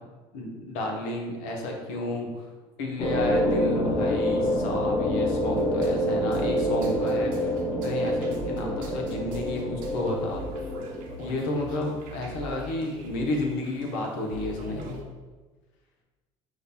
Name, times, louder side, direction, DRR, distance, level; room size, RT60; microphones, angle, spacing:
voice 1, 0.3-2.5 2.8-7.5 7.8-10.4 11.2-15.0, left 2 dB, 85° left, 1 dB, 0.9 m, -31 dB
sound 1, 3.0-11.6, equal, 45° left, 1.2 m, -27 dB
sound 2, 5.5-15.0, right 1 dB, 65° right, 0.9 m, -42 dB
5.0 x 2.2 x 4.2 m, 1.3 s
supercardioid pair, 90°, 15 cm